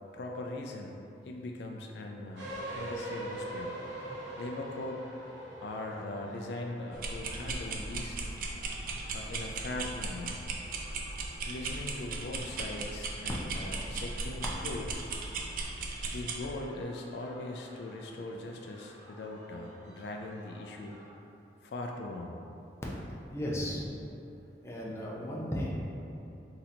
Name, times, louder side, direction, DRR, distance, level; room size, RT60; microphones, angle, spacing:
voice 1, 0.1-2.5 2.8-3.8 4.4-5.0 5.6-8.2 9.1-10.4 11.5-15.0 16.1-21.0 21.6-22.4, left 2 dB, 65° left, 1 dB, 0.3 m, -40 dB
sound 1, 2.3-21.1, right 1 dB, 85° right, 1.1 m, -47 dB
sound 2, 6.9-16.4, right 3 dB, 50° right, 0.4 m, -37 dB
voice 2, 23.3-24.0 24.6-25.7, equal, 15° left, -5 dB, 0.6 m, -35 dB
3.8 x 2.8 x 4.1 m, 2.8 s
head